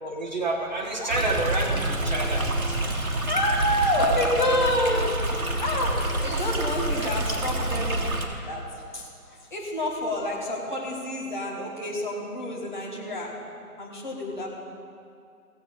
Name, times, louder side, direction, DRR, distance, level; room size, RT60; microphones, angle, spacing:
voice 1, 0.0-2.5 6.9-7.1, right 2 dB, 30° right, -2 dB, 1.3 m, -29 dB
Stream, 1.1-8.2, right 1 dB, 65° right, 1.9 m, -27 dB
voice 2, 3.3-5.0 5.6-5.9 6.2-8.1 8.5-8.6 8.9-9.1 9.5-13.3 13.8-14.5, left 1 dB, 30° left, -4 dB, 1.7 m, -27 dB
16.5 x 8.0 x 5.4 m, 2.4 s
figure-of-eight pair, 175°, 46 cm